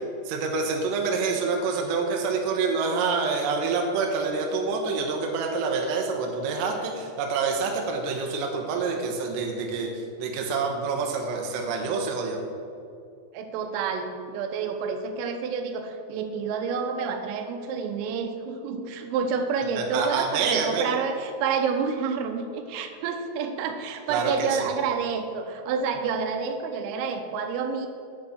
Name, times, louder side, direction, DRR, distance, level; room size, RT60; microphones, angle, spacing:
voice 1, 0.3-12.4 19.8-20.9 24.1-24.6, right 4 dB, 75° right, 2 dB, 2.9 m, -27 dB
voice 2, 13.3-27.9, right 6 dB, 90° right, 6 dB, 3.4 m, -29 dB
8.3 x 6.1 x 7.1 m, 2.4 s
omnidirectional pair, 5.7 m